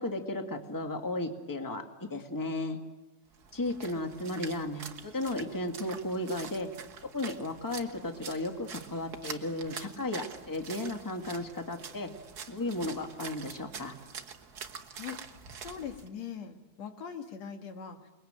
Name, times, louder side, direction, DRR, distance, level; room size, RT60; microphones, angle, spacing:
voice 1, 0.0-2.8 3.5-6.7 7.1-12.1 12.5-13.9, left 1 dB, 10° left, 5 dB, 1.4 m, -34 dB
Splash splatter, 3.3-16.1, right 6 dB, 50° right, 1.2 m, -46 dB
voice 2, 14.9-15.2 15.6-18.0, left 7 dB, 60° left, 6 dB, 2.9 m, -41 dB
28.0 x 22.0 x 9.0 m, 1.1 s
omnidirectional pair, 3.6 m